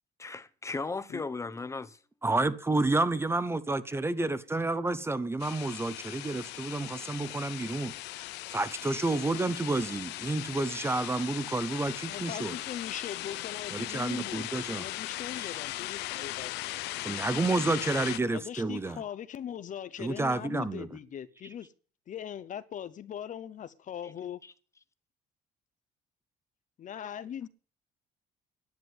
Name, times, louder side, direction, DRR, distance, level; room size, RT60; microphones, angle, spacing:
voice 1, 0.2-2.0 24.0-24.1 24.4-24.5, left 3 dB, 15° left, 1.0 m, -36 dB
voice 2, 2.2-7.9 8.5-12.6 13.7-14.8 15.4-15.5 17.0-19.0 20.0-20.9, right 2 dB, 15° right, 0.8 m, -30 dB
sound 1, 5.4-18.2, left 17 dB, 90° left, 0.7 m, -38 dB
voice 3, 12.1-14.4 14.7-16.8 18.2-21.7 22.1-24.4 26.8-27.5, left 9 dB, 50° left, 0.9 m, -40 dB
10.5 x 7.6 x 9.6 m
cardioid pair, 110°, 17 cm